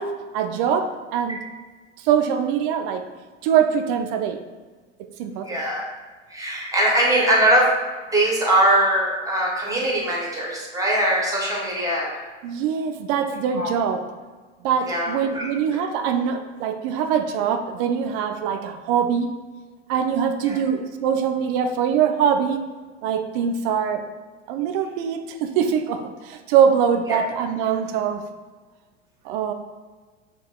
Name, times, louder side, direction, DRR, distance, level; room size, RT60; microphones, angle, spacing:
voice 1, 0.0-1.4 2.0-3.1 3.4-4.4 5.2-5.5 12.4-14.0 14.6-19.3 19.9-22.6 23.0-24.0 24.5-28.2 29.2-29.5, right 7 dB, 50° right, 7 dB, 0.4 m, -23 dB
voice 2, 5.4-5.9 6.3-7.7 8.1-12.2 13.5-13.7 14.8-15.8 20.4-20.6 27.1-27.2, right 1 dB, 10° right, -4 dB, 0.9 m, -21 dB
5.5 x 2.3 x 2.3 m, 1.4 s
hypercardioid pair, 85°, 36 cm